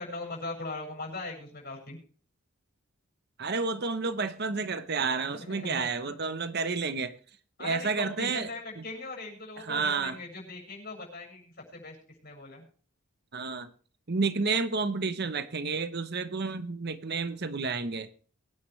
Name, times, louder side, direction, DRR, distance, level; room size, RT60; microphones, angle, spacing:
voice 1, 0.0-2.0 5.3-6.1 7.6-12.0 12.2-12.6, left 2 dB, 45° left, 7.3 m, -40 dB
voice 2, 3.4-7.2 7.6-8.5 8.8-8.9 9.6-10.2 13.3-13.7 14.1-18.1, right 4 dB, 45° right, 0.9 m, -30 dB
23.5 x 9.8 x 3.2 m
head